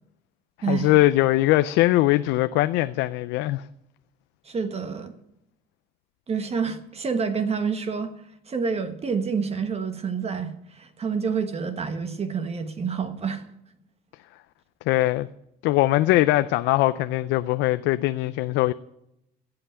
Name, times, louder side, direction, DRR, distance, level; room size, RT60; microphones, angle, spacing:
voice 1, 0.7-3.7 14.9-15.3 15.6-18.7, left 17 dB, 90° left, 0.5 m, -21 dB
voice 2, 4.4-5.1 6.3-8.1 8.5-13.5, right 5 dB, 35° right, 1.4 m, -28 dB
16.5 x 5.9 x 8.8 m
cardioid pair, 100°, 18 cm